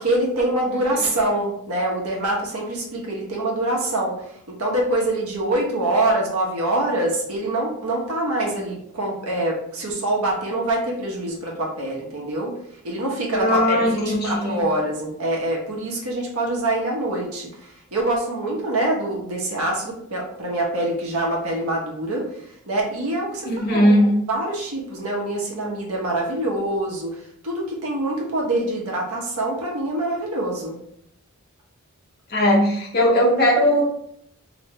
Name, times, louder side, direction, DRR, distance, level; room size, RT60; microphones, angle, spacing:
voice 1, 0.0-4.2 4.5-12.5 12.8-22.3 22.7-23.9 24.3-27.2 27.4-30.8, right 1 dB, 80° right, -2 dB, 1.2 m, -25 dB
voice 2, 13.3-14.6 23.4-24.1 32.3-33.8, equal, 45° left, -3 dB, 1.0 m, -19 dB
3.3 x 3.1 x 3.1 m, 0.73 s
head